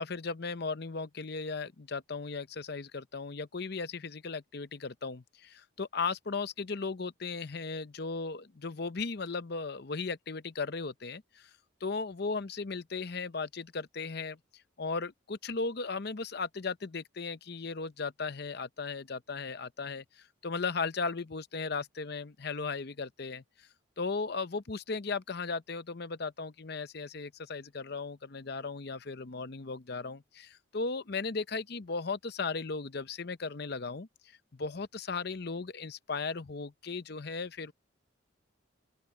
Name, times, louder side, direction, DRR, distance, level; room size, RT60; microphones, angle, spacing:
voice 1, 0.0-11.5 11.8-14.4 14.8-23.7 24.0-37.7, left 4 dB, 50° left, 0.7 m, -36 dB
open air
head